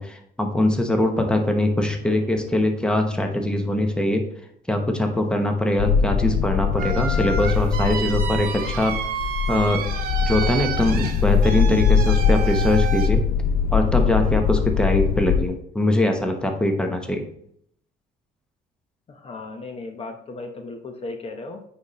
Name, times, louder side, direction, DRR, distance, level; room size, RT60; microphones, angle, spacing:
voice 1, 0.0-4.3 4.7-8.9 9.5-9.8 10.3-13.2 13.7-17.3, left 1 dB, 5° left, 4 dB, 1.0 m, -22 dB
voice 2, 2.0-2.5 19.1-21.6, left 3 dB, 35° left, 5 dB, 0.8 m, -36 dB
sound 1, 5.8-15.5, left 7 dB, 70° left, 0.4 m, -22 dB
sound 2, 6.8-13.1, right 7 dB, 60° right, 0.9 m, -30 dB
9.2 x 4.2 x 3.1 m, 0.70 s
cardioid pair, 110°, 17 cm